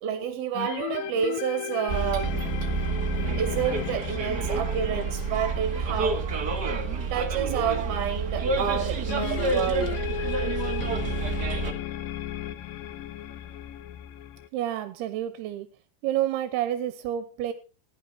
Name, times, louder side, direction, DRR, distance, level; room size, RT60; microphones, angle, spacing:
voice 1, 0.0-2.4 3.4-6.3 7.1-10.0, right 8 dB, 70° right, 3.7 m, -29 dB
sound 1, 0.5-7.1 9.1-14.5, left 12 dB, 75° left, 2.2 m, -35 dB
Bus, 1.9-11.7, right 4 dB, 45° right, 1.4 m, -29 dB
voice 2, 14.5-15.7 16.0-17.5, right 12 dB, 90° right, 3.0 m, -29 dB
16.0 x 11.0 x 4.1 m
omnidirectional pair, 4.6 m